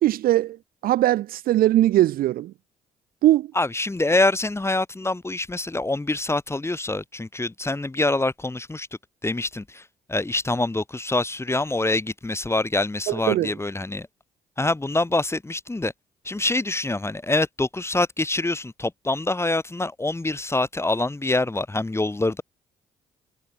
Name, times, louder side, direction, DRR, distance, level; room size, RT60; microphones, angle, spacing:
voice 1, 0.0-0.6 0.8-2.5 3.2-3.5 13.1-13.5, right 14 dB, 60° right, 0.6 m, -20 dB
voice 2, 3.5-8.9 9.2-9.8 10.1-14.1 14.6-15.9 16.2-22.4, left 2 dB, 15° left, 1.5 m, -25 dB
hypercardioid pair, 45°, 17 cm